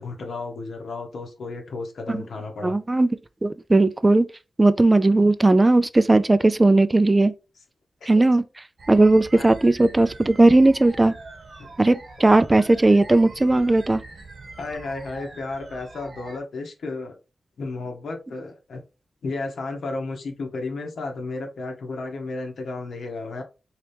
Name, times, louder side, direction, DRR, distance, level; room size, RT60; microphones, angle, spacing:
voice 1, 0.0-2.8 8.0-8.1 9.4-9.5 11.6-11.7 14.6-17.2 17.6-18.8 19.2-23.4, left 3 dB, 80° left, 0.9 m, -33 dB
voice 2, 2.6-3.1 3.4-4.3 4.6-7.3 8.1-8.4 8.9-11.1 11.8-14.0, right 2 dB, 25° right, 0.3 m, -17 dB
sound 1, 8.8-16.4, right 3 dB, 55° right, 0.9 m, -43 dB
3.0 x 2.8 x 3.3 m
cardioid pair, 70°, 0 cm